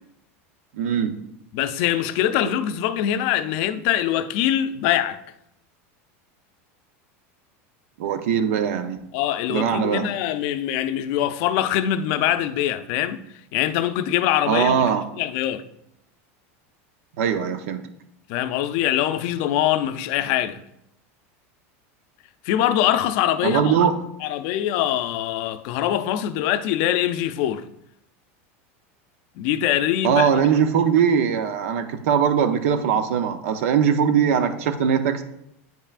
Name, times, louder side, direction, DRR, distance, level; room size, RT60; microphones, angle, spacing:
voice 1, 0.7-1.1 8.0-9.0 9.5-10.1 14.5-15.0 17.2-17.8 23.4-23.9 30.0-35.2, right 7 dB, 80° right, 0.7 m, -21 dB
voice 2, 1.5-5.2 9.1-13.2 13.5-15.6 18.3-20.6 22.4-23.7 24.2-27.6 29.4-30.4, left 11 dB, 60° left, 0.5 m, -23 dB
9.1 x 5.5 x 2.4 m
supercardioid pair, 140°, 7 cm